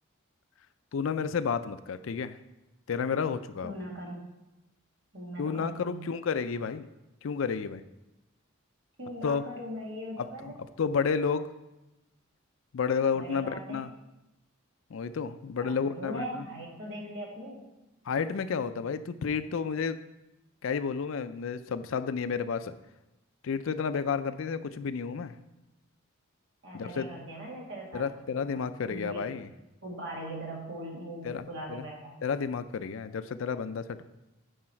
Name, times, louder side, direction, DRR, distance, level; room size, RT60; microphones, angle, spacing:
voice 1, 0.9-2.4 2.9-3.7 5.4-6.9 7.2-7.8 9.2-9.4 10.2-10.3 10.8-11.4 12.7-13.9 14.9-16.4 18.1-20.0 20.6-22.7 23.4-25.3 26.7-27.1 27.9-29.5 31.2-31.8 32.2-34.0, left 6 dB, 70° left, 12 dB, 0.4 m, -31 dB
voice 2, 3.6-4.3 5.1-6.0 9.0-10.6 13.1-13.9 15.6-17.7 26.6-28.1 28.4-29.3 29.8-32.2, equal, 60° right, -2 dB, 2.1 m, -40 dB
10.0 x 4.8 x 4.4 m, 0.97 s
head